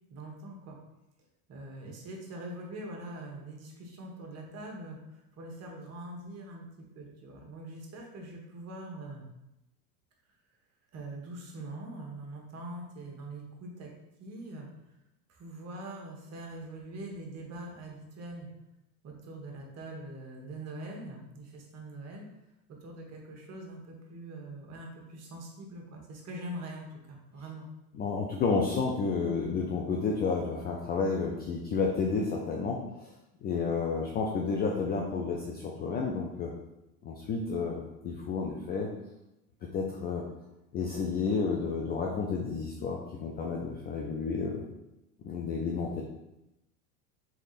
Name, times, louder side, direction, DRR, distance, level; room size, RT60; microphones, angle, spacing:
voice 1, 0.1-0.8 1.5-9.3 10.9-13.9 14.2-14.7 15.3-18.5 19.0-22.3 22.7-27.7, right 1 dB, 35° right, 0 dB, 1.3 m, -43 dB
voice 2, 28.0-33.1 33.4-36.5 37.0-38.9 39.7-40.2 40.7-44.6 45.2-46.0, left 4 dB, 20° left, -1 dB, 0.4 m, -31 dB
3.7 x 3.5 x 4.1 m, 0.91 s
hypercardioid pair, 110°, 46 cm